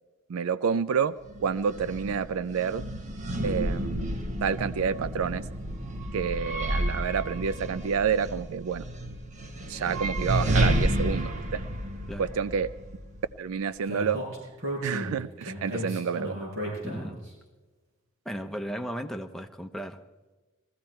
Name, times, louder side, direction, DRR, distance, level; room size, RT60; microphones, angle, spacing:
voice 1, 0.3-2.8 3.4-5.5 6.1-8.8 9.7-11.6 12.2-12.7 13.4-14.2 14.8-16.5, right 6 dB, 85° right, 14 dB, 0.4 m, -29 dB
sound 1, 1.2-13.4, right 1 dB, 35° right, 1.3 m, -31 dB
Speech, 13.9-17.3, equal, 65° right, 6.6 m, -34 dB
voice 2, 16.8-17.2 18.2-20.0, equal, ahead, 5 dB, 0.8 m, -36 dB
20.0 x 15.0 x 4.5 m, 1.2 s
head